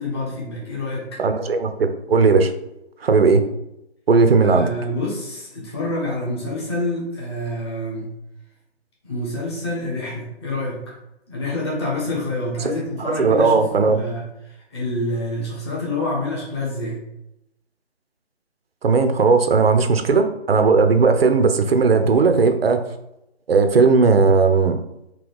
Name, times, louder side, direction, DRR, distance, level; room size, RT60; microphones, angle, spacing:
voice 1, 0.0-1.2 4.4-8.1 9.0-10.9 11.3-17.0, left 1 dB, 25° left, -5 dB, 1.1 m, -27 dB
voice 2, 1.2-2.5 3.0-3.4 4.1-4.7 12.6-12.7 13.1-14.0 18.8-22.9 23.5-24.8, right 4 dB, 60° right, 7 dB, 0.5 m, -17 dB
3.8 x 2.8 x 3.4 m, 0.86 s
figure-of-eight pair, 155°, 33 cm